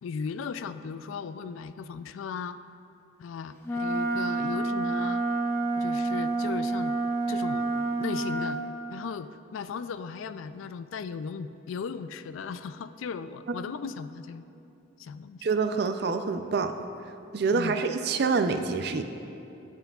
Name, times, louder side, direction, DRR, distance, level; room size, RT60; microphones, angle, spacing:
voice 1, 0.0-2.6 3.2-5.2 5.8-7.0 7.3-8.6 8.9-14.4 15.0-15.5 17.5-17.8, left 6 dB, 75° left, 12 dB, 0.3 m, -37 dB
Wind instrument woodwind instrument, 3.6-8.6, right 2 dB, 10° left, 0.6 m, -28 dB
voice 2, 15.4-16.7 17.3-19.0, right 4 dB, 50° right, 8 dB, 0.4 m, -26 dB
15.5 x 5.7 x 2.4 m, 2.8 s
head